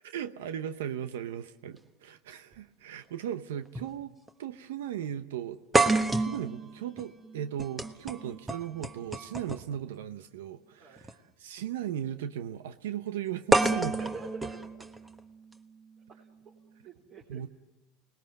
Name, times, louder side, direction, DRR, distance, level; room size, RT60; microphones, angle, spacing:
voice 1, 0.0-4.1 4.4-5.6 6.2-14.0 17.3-17.5, right 10 dB, 90° right, 0.8 m, -37 dB
sound 1, 2.5-2.6 3.7-3.9 4.3-4.4 5.7-9.8 11.0-11.1 13.5-15.5, right 2 dB, 15° right, 1.2 m, -29 dB
voice 2, 13.9-14.8 16.2-17.4, right 5 dB, 45° right, 3.7 m, -47 dB
29.5 x 20.5 x 7.7 m
supercardioid pair, 120°, 0 cm